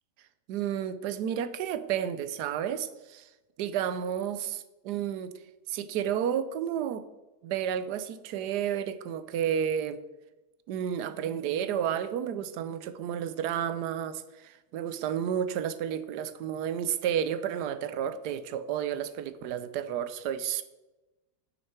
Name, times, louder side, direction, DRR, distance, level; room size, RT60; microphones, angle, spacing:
voice 1, 0.5-3.3 3.6-5.3 5.7-7.0 7.4-10.0 10.7-20.6, right 9 dB, 85° right, 12 dB, 1.2 m, -31 dB
9.2 x 6.5 x 4.4 m, 1.1 s
omnidirectional pair, 1.7 m